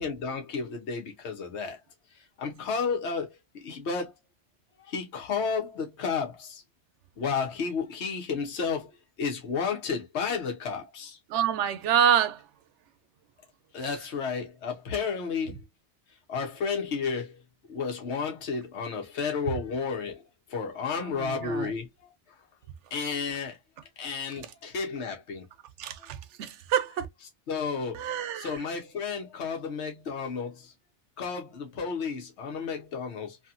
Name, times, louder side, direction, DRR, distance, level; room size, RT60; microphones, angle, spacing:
voice 1, 0.0-1.8 2.4-4.1 4.9-6.6 7.2-8.9 9.2-11.2 13.7-15.6 16.3-17.3 17.7-20.2 20.5-21.9 22.9-23.6 24.0-25.4 27.5-28.0 28.3-30.7 31.2-33.4, left 5 dB, 75° left, 1.1 m, -32 dB
voice 2, 11.3-12.4 21.0-21.7 25.8-27.1 27.9-28.6, right 9 dB, 90° right, 0.9 m, -27 dB
2.8 x 2.7 x 2.5 m
omnidirectional pair, 1.2 m